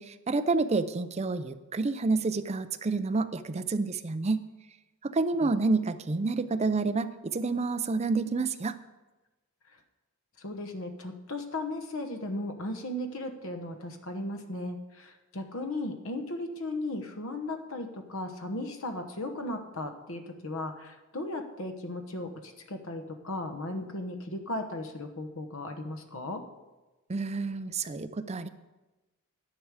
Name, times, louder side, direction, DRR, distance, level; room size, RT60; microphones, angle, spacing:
voice 1, 0.0-4.4 5.0-8.7 27.1-28.5, right 3 dB, 30° right, 11 dB, 0.5 m, -29 dB
voice 2, 10.4-26.4, left 1 dB, 60° left, 6 dB, 1.1 m, -36 dB
11.0 x 10.5 x 4.8 m, 1.1 s
head